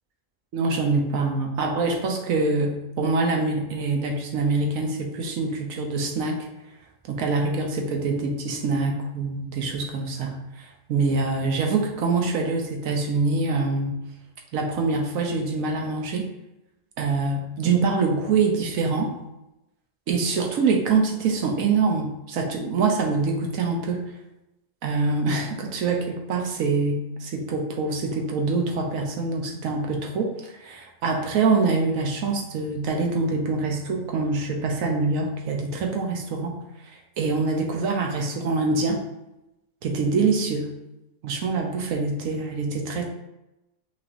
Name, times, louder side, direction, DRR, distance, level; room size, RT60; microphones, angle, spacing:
voice 1, 0.5-6.5 7.1-14.0 14.5-16.3 17.0-19.1 20.1-24.0 24.8-36.6 37.2-39.0 39.8-40.7 41.2-43.1, right 4 dB, 80° right, 2 dB, 1.2 m, -25 dB
5.5 x 3.3 x 2.6 m, 0.93 s
omnidirectional pair, 1.4 m